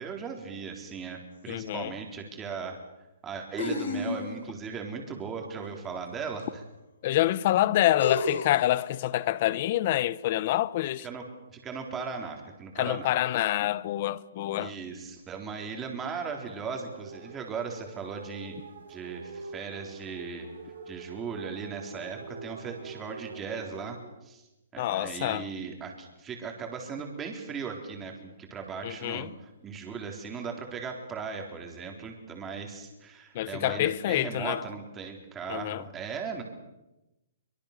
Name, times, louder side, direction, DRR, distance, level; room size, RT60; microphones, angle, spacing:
voice 1, 0.0-2.8 3.2-6.6 11.0-11.2 11.5-13.1 14.6-18.6 18.9-20.5 20.9-24.4 24.7-36.4, right 5 dB, 15° right, 3.8 m, -38 dB
sound 1, 1.5-1.6 3.6-4.5 6.4-6.5 8.0-8.7, left 3 dB, 80° left, 5.2 m, -31 dB
voice 2, 1.5-1.9 7.0-11.1 12.8-14.7 24.8-25.5 28.8-29.3 33.3-34.6 35.5-35.8, left 14 dB, 40° left, 0.9 m, -27 dB
sound 2, 16.3-24.0, right 4 dB, 80° right, 6.2 m, -45 dB
24.0 x 23.0 x 6.7 m
hypercardioid pair, 160°, 0 cm